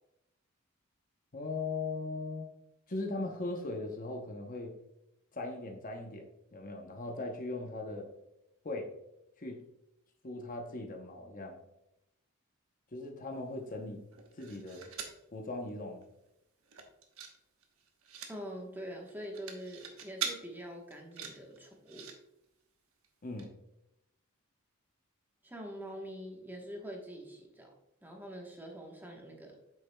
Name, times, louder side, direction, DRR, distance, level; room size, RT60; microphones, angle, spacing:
voice 1, 1.3-2.5 2.9-4.7 5.3-8.1 8.6-8.9 9.4-9.6 10.2-11.6 12.9-14.1 14.4-14.9 15.3-16.0 23.2-23.5, left 2 dB, 40° left, 2 dB, 0.8 m, -39 dB
sound 1, 14.1-15.2 15.7-15.8 16.0-16.3 16.6-17.4 17.6-18.3 19.1-20.4 20.9-22.2 23.0-23.1 23.4-23.5, right 7 dB, 70° right, 1.1 m, -42 dB
voice 2, 18.3-22.1 25.4-27.7 28.0-29.6, equal, 10° right, 0 dB, 1.1 m, -44 dB
8.6 x 6.7 x 2.2 m, 0.86 s
head